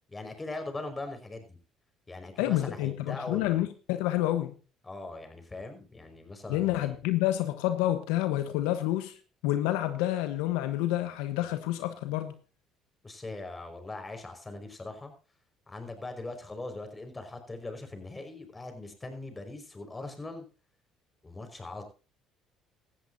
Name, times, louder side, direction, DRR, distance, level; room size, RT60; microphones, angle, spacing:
voice 1, 0.1-1.6 2.1-3.7 4.8-6.9 13.0-15.1 15.7-20.5 21.2-21.8, left 2 dB, 20° left, 5.3 m, -41 dB
voice 2, 2.4-4.5 6.5-9.1 9.4-12.3, left 14 dB, 85° left, 1.1 m, -28 dB
17.5 x 13.5 x 2.7 m
supercardioid pair, 75°, 0 cm